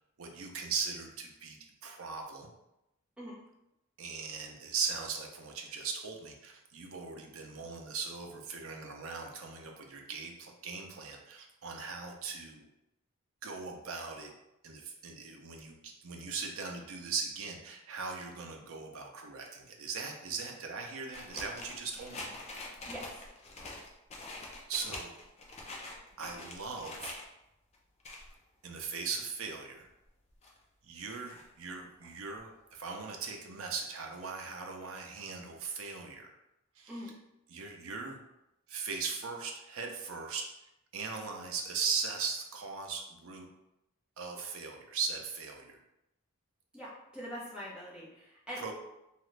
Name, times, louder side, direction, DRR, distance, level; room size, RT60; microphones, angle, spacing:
voice 1, 0.2-2.5 4.0-12.7 13.4-14.3 14.6-22.3 24.7-25.1 26.2-27.1 28.6-29.9 30.8-36.3 36.8-37.1 37.5-38.2 38.7-40.4 40.9-43.5 44.2-45.8 48.6-48.7, right 5 dB, 70° right, 2 dB, 0.5 m, -39 dB
sound 1, 21.1-27.2 27.7-28.3 28.8-28.9 29.3-29.4 30.0-30.6 31.1-31.4 32.0-32.1 32.4-32.5 32.7-32.8, left 2 dB, 30° left, 0.4 m, -45 dB
voice 2, 46.7-48.7, equal, 5° right, -8 dB, 0.8 m, -43 dB
2.9 x 2.4 x 3.1 m, 0.89 s
head